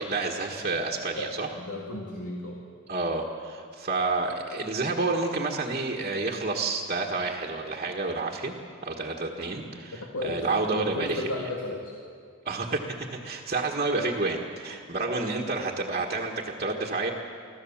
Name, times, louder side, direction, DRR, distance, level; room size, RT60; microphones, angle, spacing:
voice 1, 0.0-1.5 2.9-8.5 8.8-11.2 12.4-17.1, right 3 dB, 35° right, 0 dB, 1.5 m, -29 dB
voice 2, 1.2-2.6 10.0-12.0, left 1 dB, 85° left, -2 dB, 2.3 m, -34 dB
25.5 x 15.5 x 7.3 m, 2.2 s
head